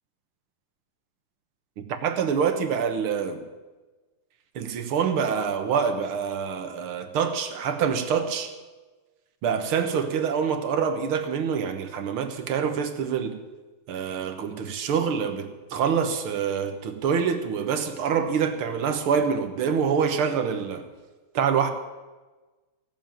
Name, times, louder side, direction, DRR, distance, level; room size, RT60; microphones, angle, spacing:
voice 1, 1.8-3.4 4.6-8.5 9.4-13.4 13.9-20.8 21.3-21.7, right 6 dB, 80° right, 2.1 m, -26 dB
17.0 x 7.4 x 9.0 m
omnidirectional pair, 2.4 m